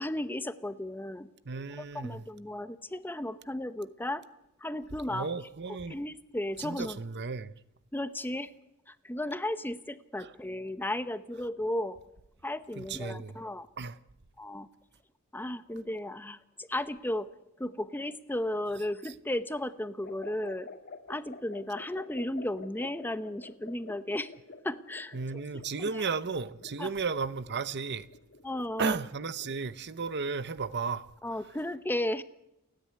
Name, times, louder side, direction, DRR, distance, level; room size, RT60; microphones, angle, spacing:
voice 1, 0.0-1.3 1.9-4.2 4.6-5.3 5.9-7.0 7.9-8.5 8.9-12.0 12.4-13.7 14.4-14.7 15.3-17.3 17.6-20.7 21.1-24.3 24.6-25.2 25.5-26.1 26.8-26.9 28.4-29.0 31.2-32.2, left 1 dB, 10° left, 0.8 m, -34 dB
voice 2, 1.5-2.3 5.1-6.0 6.6-7.5 10.2-10.3 12.8-13.4 13.8-14.0 25.1-28.1 28.8-31.1, right 4 dB, 55° right, 0.8 m, -34 dB
falling bubbles, 20.0-29.6, left 3 dB, 50° left, 1.9 m, -49 dB
29.5 x 10.5 x 9.5 m
head